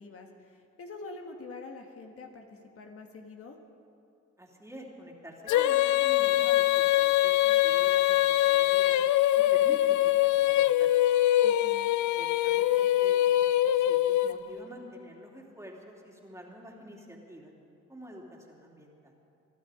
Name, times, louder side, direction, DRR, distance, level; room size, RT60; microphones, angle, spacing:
voice 1, 0.0-3.6 11.4-11.9, left 3 dB, 50° left, 3 dB, 1.6 m, -45 dB
voice 2, 4.4-9.0 9.4-11.1 12.2-17.5 17.9-19.1, equal, 10° right, -1 dB, 2.9 m, -48 dB
Female singing, 5.5-14.6, left 14 dB, 75° left, 0.5 m, -23 dB
23.5 x 12.0 x 5.0 m, 2.5 s
cardioid pair, 90°, 30 cm